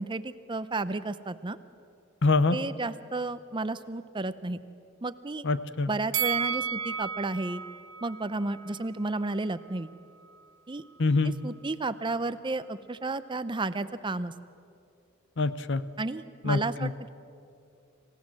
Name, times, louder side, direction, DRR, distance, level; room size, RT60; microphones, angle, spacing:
voice 1, 0.0-1.6 2.5-4.6 5.0-5.5 5.9-7.6 8.0-9.9 10.7-10.8 11.4-14.3 16.0-17.1, right 2 dB, 25° right, 13 dB, 0.7 m, -32 dB
voice 2, 2.2-2.6 5.4-5.9 11.0-11.3 15.4-15.8 16.4-16.9, left 3 dB, 60° left, 14 dB, 0.8 m, -25 dB
Bell, 6.1-9.3 9.7-9.8, right 8 dB, 75° right, 0.8 m, -33 dB
26.5 x 16.0 x 7.6 m, 2.5 s
head